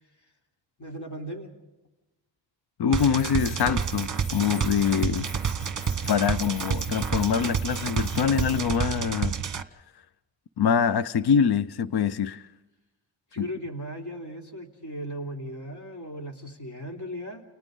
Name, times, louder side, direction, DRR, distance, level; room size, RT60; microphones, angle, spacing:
voice 1, 0.8-1.5 13.3-17.4, equal, 40° left, 3.3 m, -37 dB
Keys jangling, 2.8-9.0, left 6 dB, 80° left, 1.3 m, -47 dB
voice 2, 2.8-5.3 6.1-9.4 10.6-12.5 13.4-13.5, left 7 dB, 60° left, 0.7 m, -24 dB
sound 1, 2.9-9.6, right 7 dB, 40° right, 1.2 m, -29 dB
29.5 x 29.5 x 3.9 m
wide cardioid pair, 125°, 45 cm